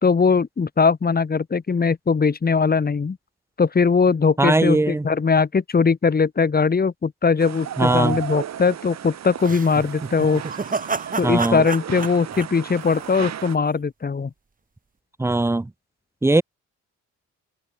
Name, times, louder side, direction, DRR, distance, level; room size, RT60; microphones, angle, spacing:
voice 1, 0.0-3.2 3.6-10.4 11.2-14.3, left 5 dB, 30° left, 2.4 m, -20 dB
voice 2, 4.4-5.1 7.8-8.2 11.2-11.6 15.2-15.7 16.2-16.4, right 2 dB, 10° right, 0.8 m, -19 dB
sound 1, 7.4-13.5, right 10 dB, 60° right, 3.9 m, -34 dB
sound 2, 9.4-13.6, right 4 dB, 25° right, 4.5 m, -30 dB
open air
cardioid pair, 90°, 30 cm